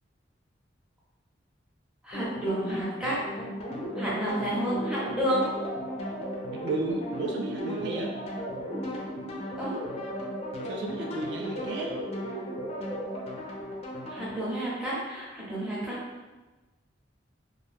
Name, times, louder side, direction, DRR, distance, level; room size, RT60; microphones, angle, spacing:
voice 1, 2.0-3.2 4.0-5.5 9.6-9.7 14.1-16.0, right 1 dB, 5° right, -7 dB, 0.6 m, -30 dB
sound 1, 2.1-14.5, left 1 dB, 35° left, 0.4 m, -37 dB
sound 2, 3.7-13.2, right 1 dB, 80° right, 1.0 m, -38 dB
voice 2, 6.6-8.1 10.7-11.9, right 2 dB, 65° right, 0 dB, 0.3 m, -33 dB
2.4 x 2.2 x 3.2 m, 1.2 s
head